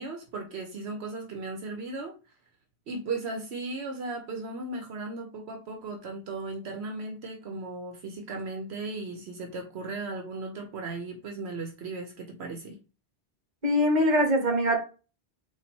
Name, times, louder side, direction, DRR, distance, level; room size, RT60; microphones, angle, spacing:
voice 1, 0.0-2.1 2.9-12.8, right 3 dB, 75° right, 4 dB, 1.0 m, -36 dB
voice 2, 13.6-14.8, equal, 45° right, 3 dB, 1.3 m, -22 dB
4.0 x 2.6 x 4.3 m, 0.33 s
omnidirectional pair, 1.1 m